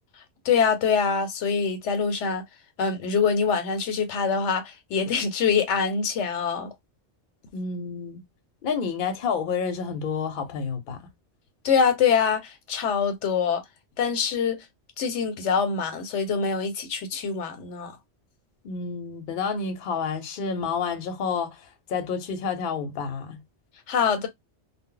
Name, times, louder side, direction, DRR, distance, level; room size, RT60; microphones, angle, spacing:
voice 1, 0.5-2.4 2.8-6.7 11.6-13.6 14.0-14.6 15.0-17.9 23.9-24.3, left 6 dB, 85° left, 1.0 m, -24 dB
voice 2, 7.5-8.2 8.6-11.0 18.6-23.4, left 5 dB, 55° left, 0.8 m, -29 dB
2.0 x 2.0 x 3.7 m
omnidirectional pair, 1.2 m